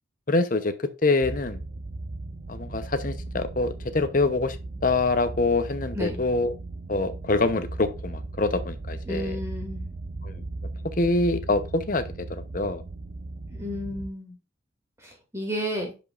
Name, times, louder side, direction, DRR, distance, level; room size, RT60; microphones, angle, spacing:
voice 1, 0.3-1.6 2.5-4.6 4.8-6.5 6.9-9.4 10.2-10.4 10.8-12.8, left 3 dB, 45° left, 10 dB, 0.9 m, -25 dB
sound 1, 1.2-14.1, right 2 dB, 45° right, 0.6 m, -37 dB
voice 2, 9.1-9.9 13.5-14.3 15.0-15.9, equal, 15° right, 0 dB, 2.4 m, -32 dB
10.5 x 5.1 x 2.5 m, 0.28 s
head